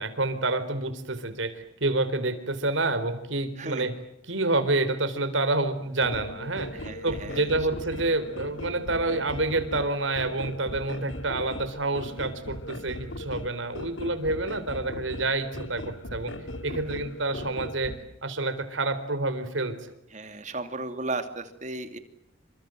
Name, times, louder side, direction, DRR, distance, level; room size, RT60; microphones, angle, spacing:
voice 1, 0.0-3.9 4.3-16.3 16.6-18.0 18.2-19.9, right 2 dB, 75° right, 12 dB, 4.1 m, -28 dB
voice 2, 3.6-3.9 6.7-7.5 8.0-8.1 16.7-16.8 20.1-22.0, right 2 dB, 35° right, 8 dB, 2.8 m, -35 dB
sound 1, 6.0-18.0, left 1 dB, 75° left, 2.3 m, -39 dB
28.5 x 25.5 x 7.8 m, 0.79 s
head